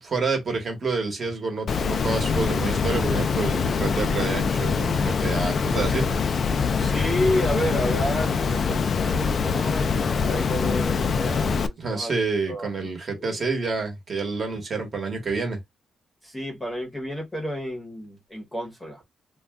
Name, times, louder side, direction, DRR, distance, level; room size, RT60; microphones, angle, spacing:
voice 1, 0.0-6.1 11.8-15.6, right 4 dB, 35° right, 1.1 m, -28 dB
Water, 1.7-11.7, left 5 dB, 40° left, 0.3 m, -24 dB
voice 2, 6.8-11.6 11.9-12.1 12.5-12.9 13.2-13.4 16.2-19.0, equal, 10° left, 0.9 m, -30 dB
2.3 x 2.2 x 3.4 m
cardioid pair, 155°, 0 cm